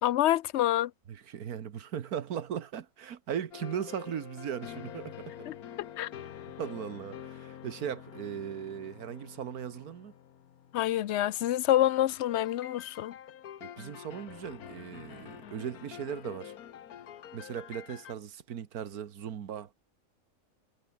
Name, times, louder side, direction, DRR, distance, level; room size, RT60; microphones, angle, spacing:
voice 1, 0.0-0.9 5.5-6.1 10.7-13.1, left 13 dB, 65° left, 0.8 m, -27 dB
voice 2, 1.1-5.5 6.6-10.1 13.6-16.5 17.3-19.7, right 9 dB, 85° right, 1.7 m, -38 dB
sound 1, 3.5-11.3 12.1-18.1, left 10 dB, 85° left, 1.5 m, -47 dB
omnidirectional pair, 1.5 m